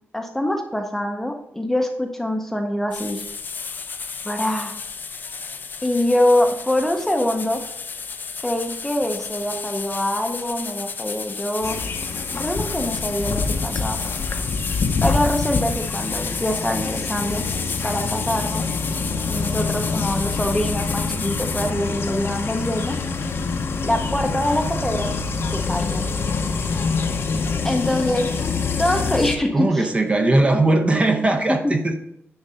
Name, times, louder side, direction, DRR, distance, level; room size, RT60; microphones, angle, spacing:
voice 1, 0.1-3.2 4.2-4.8 5.8-7.6 8.4-11.8 12.3-14.0 15.0-17.4 17.8-18.6 19.3-22.9 23.8-25.1 25.5-26.1 27.6-28.3 28.8-29.7 31.5-31.6, left 1 dB, 5° left, 4 dB, 0.7 m, -24 dB
sound 1, 2.9-21.7, left 5 dB, 45° left, 0.5 m, -32 dB
sound 2, 11.6-29.4, left 4 dB, 60° left, 0.8 m, -26 dB
voice 2, 29.5-31.9, right 2 dB, 25° right, 4 dB, 0.8 m, -19 dB
10.0 x 3.9 x 5.5 m, 0.75 s
wide cardioid pair, 175°, 5 cm